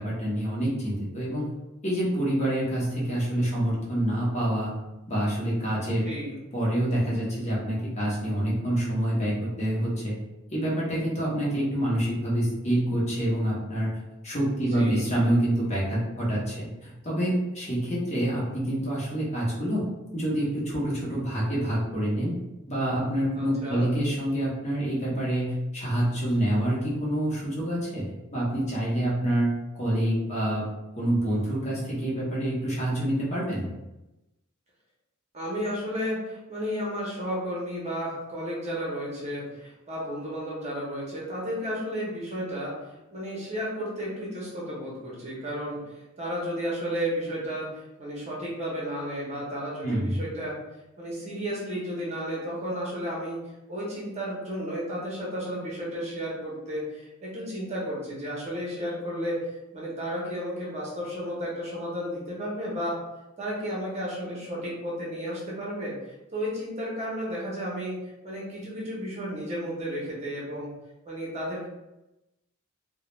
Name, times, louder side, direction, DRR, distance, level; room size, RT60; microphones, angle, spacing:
voice 1, 0.0-1.5 1.8-4.7 5.1-6.0 6.5-10.2 10.5-13.9 14.2-19.8 20.1-22.3 22.7-28.1 28.3-29.5 29.7-30.7 30.9-33.7 49.8-50.2, right 1 dB, 35° left, -6 dB, 0.8 m, -27 dB
voice 2, 6.0-6.3 14.7-15.1 23.3-23.9 35.3-50.5 51.0-53.4 53.7-59.4 59.7-63.0 63.4-65.9 66.3-67.9 68.2-70.7 71.0-71.7, equal, 30° right, -5 dB, 0.7 m, -33 dB
2.3 x 2.1 x 3.0 m, 0.97 s
head